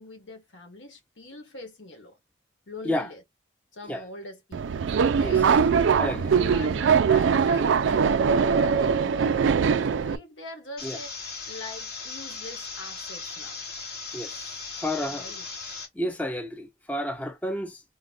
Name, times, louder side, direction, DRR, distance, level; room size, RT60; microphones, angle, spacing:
voice 1, 0.0-2.2 2.7-3.2 3.7-4.8 5.1-5.6 6.1-11.2 11.4-13.6 15.0-15.5, left 2 dB, 85° left, 1.3 m, -43 dB
Subway metro underground, 4.5-10.2, right 6 dB, 85° right, 0.4 m, -22 dB
voice 2, 6.0-6.3 10.8-11.0 14.1-15.3 15.9-17.8, left 1 dB, 10° left, 0.4 m, -31 dB
sound 1, 10.8-15.8, left 4 dB, 55° left, 1.5 m, -38 dB
3.9 x 2.2 x 3.6 m
head